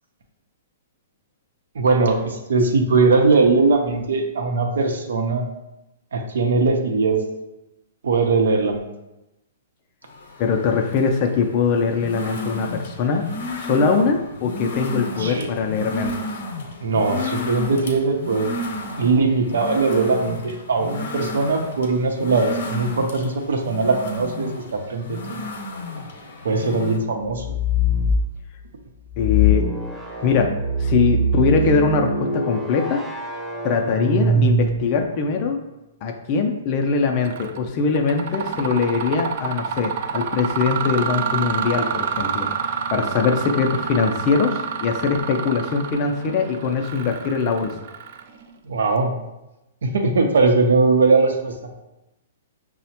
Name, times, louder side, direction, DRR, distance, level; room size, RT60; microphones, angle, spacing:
voice 1, 1.7-5.5 6.1-7.2 8.0-8.9 15.2-15.5 16.8-18.5 19.0-25.5 26.4-27.6 48.6-49.2 49.8-51.7, right 3 dB, 85° right, 4 dB, 0.6 m, -20 dB
sound 1, 10.1-27.0, left 2 dB, 65° left, 0.7 m, -33 dB
voice 2, 10.4-13.3 13.6-16.3 29.2-29.7 30.2-30.5 30.8-33.0 33.6-35.6 36.0-42.5 42.9-47.7, left 5 dB, 35° left, 4 dB, 0.3 m, -22 dB
sound 2, 27.3-28.3 29.1-35.1, equal, 15° right, 0.7 m, -23 dB
Mechanisms, 37.2-37.6 37.9-48.5, right 7 dB, 50° right, 0.3 m, -28 dB
5.7 x 2.1 x 2.8 m, 0.95 s
hypercardioid pair, 160°, 0 cm